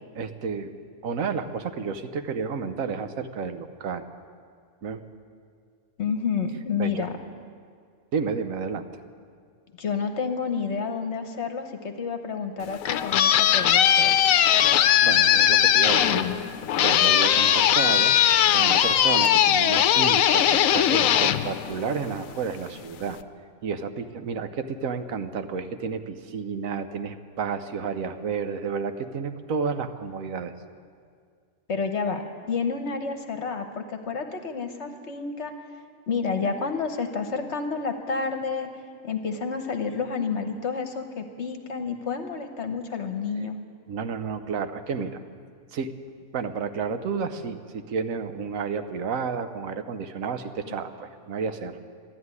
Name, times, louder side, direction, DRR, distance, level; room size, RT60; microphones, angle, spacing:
voice 1, 0.1-0.7 1.0-4.0 4.8-5.0 6.8-7.1 8.1-8.8 15.0-16.3 16.8-18.2 18.5-23.2 23.6-30.5 43.9-45.2 45.7-45.9 46.3-51.8, right 5 dB, 70° right, 9 dB, 1.2 m, -31 dB
voice 2, 6.0-7.2 9.8-14.1 31.7-35.5 36.1-38.7 39.0-43.6 50.7-50.8, left 5 dB, 55° left, 7 dB, 1.2 m, -30 dB
sound 1, 12.6-22.3, left 10 dB, 75° left, 1.0 m, -20 dB
13.5 x 11.0 x 9.6 m, 2.1 s
omnidirectional pair, 1.5 m